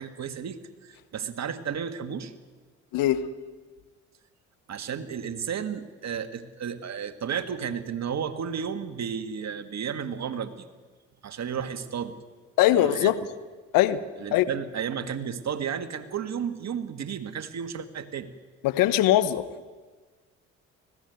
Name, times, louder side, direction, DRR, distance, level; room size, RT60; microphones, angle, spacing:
voice 1, 0.0-2.3 4.7-10.7 11.2-12.1 12.7-13.1 14.2-18.3, right 7 dB, 50° right, 9 dB, 1.8 m, -33 dB
voice 2, 2.9-3.3 12.6-13.2 13.7-14.0 14.3-14.4 18.6-19.4, left 13 dB, 70° left, 13 dB, 1.2 m, -21 dB
19.0 x 15.5 x 9.5 m, 1.4 s
hypercardioid pair, 55°, 34 cm